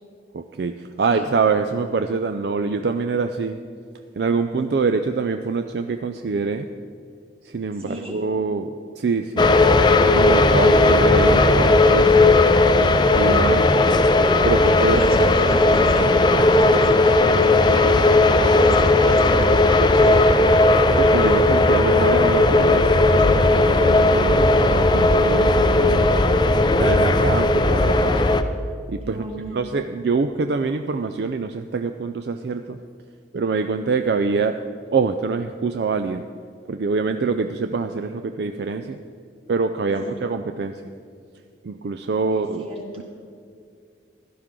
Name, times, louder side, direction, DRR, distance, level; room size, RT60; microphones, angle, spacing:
voice 1, 0.3-3.6 4.2-6.7 7.4-8.7 9.0-9.5 10.0-12.5 13.1-13.8 14.4-15.0 20.9-26.1 26.6-28.2 28.9-29.2 29.5-32.8 33.3-34.6 34.9-36.2 36.7-39.0 39.5-40.8 41.6-42.7 43.0-43.1, right 4 dB, 60° right, 7 dB, 0.4 m, -25 dB
voice 2, 7.8-8.2 10.6-10.7 14.6-20.4 21.2-21.5 29.1-29.6 39.9-40.1 42.3-43.0, right 1 dB, 30° right, -1 dB, 1.9 m, -32 dB
sound 1, 9.4-28.4, left 2 dB, 25° left, 0.4 m, -16 dB
15.5 x 12.0 x 3.7 m, 2.3 s
head